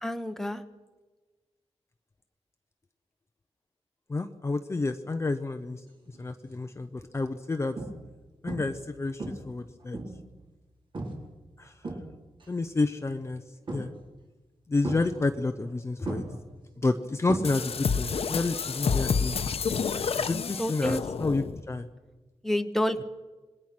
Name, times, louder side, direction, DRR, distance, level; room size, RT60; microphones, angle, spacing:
voice 1, 0.0-0.6 20.6-21.0 22.4-23.0, left 1 dB, 5° left, 8 dB, 1.2 m, -28 dB
voice 2, 4.1-5.8 6.1-7.8 8.4-10.0 11.6-11.7 12.5-13.4 13.7-13.9 14.7-16.2 16.8-19.4 20.2-21.9, left 3 dB, 25° left, 7 dB, 0.8 m, -30 dB
sound 1, 6.1-6.4 7.0-7.2 7.8-8.2 8.5-8.9 9.2-10.3 10.9-11.3 11.6-12.5 13.7-14.2 14.8-15.7 16.0-17.9 18.2-18.6 20.7-20.8, right 2 dB, 45° right, 4.1 m, -37 dB
sound 2, 17.4-21.6, left 5 dB, 60° left, 1.1 m, -29 dB
26.5 x 21.0 x 6.1 m, 1.2 s
wide cardioid pair, 170°, 11 cm